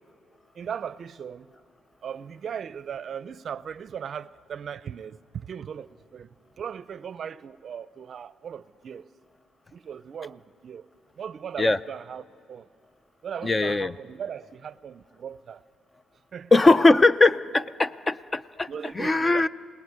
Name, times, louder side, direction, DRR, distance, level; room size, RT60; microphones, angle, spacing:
voice 1, 0.6-1.5 2.0-9.1 9.7-10.9 11.2-12.7 13.2-15.6 16.3-16.9 18.7-19.5, right 8 dB, 55° right, 0.5 m, -38 dB
voice 2, 13.4-13.9 16.5-18.7 18.9-19.5, left 2 dB, 25° left, 0.5 m, -20 dB
28.0 x 19.0 x 9.5 m
cardioid pair, 90°, 0 cm